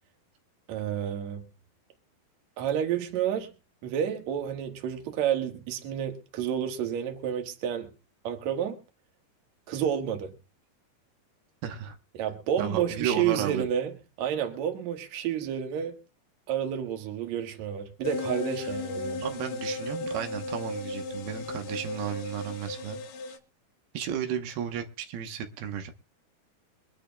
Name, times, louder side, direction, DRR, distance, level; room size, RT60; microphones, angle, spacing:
voice 1, 0.7-1.5 2.6-3.5 3.8-7.9 8.2-8.8 9.7-10.3 12.1-13.9 14.2-16.0 16.5-19.2, right 9 dB, 55° right, 2.5 m, -30 dB
voice 2, 11.6-12.0 12.6-13.7 18.6-18.7 19.2-23.0 23.3-23.4 23.9-25.9, right 8 dB, 85° right, 3.1 m, -33 dB
sound 1, 18.0-23.4, left 2 dB, 85° left, 3.3 m, -35 dB
23.5 x 11.0 x 2.3 m
omnidirectional pair, 4.4 m